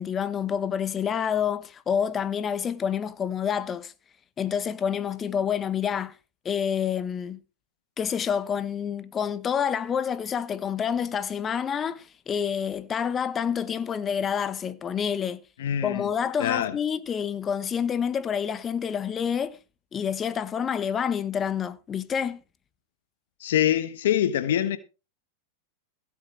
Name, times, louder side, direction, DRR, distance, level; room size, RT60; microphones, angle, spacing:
voice 1, 0.0-3.9 4.4-6.2 6.4-7.4 8.0-15.4 15.8-19.6 19.9-22.4, left 7 dB, 25° left, 1.2 m, -28 dB
voice 2, 15.6-16.1 16.4-16.8 23.4-24.8, left 11 dB, 75° left, 1.1 m, -24 dB
16.5 x 7.5 x 4.5 m
hypercardioid pair, 115°, 0 cm